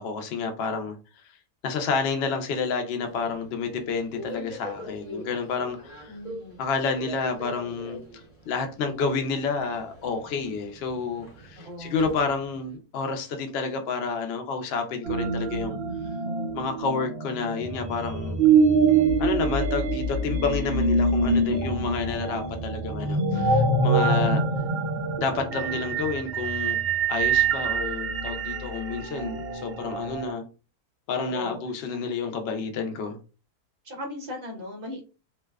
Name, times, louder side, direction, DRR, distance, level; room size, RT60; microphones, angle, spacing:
voice 1, 0.0-1.4 1.6-6.2 6.6-15.8 16.5-18.4 19.2-24.4 25.2-26.8 27.1-30.4 31.1-33.2, left 4 dB, 70° left, 0.6 m, -30 dB
Subway metro underground, 3.0-12.8, equal, 30° left, 1.0 m, -43 dB
voice 2, 6.1-6.6 11.6-12.1 24.3-24.7 31.3-31.6 32.0-32.1 33.8-35.1, left 1 dB, 45° right, 0.7 m, -38 dB
sound 1, 15.0-30.3, right 4 dB, 80° right, 0.5 m, -25 dB
2.5 x 2.2 x 2.2 m
omnidirectional pair, 1.6 m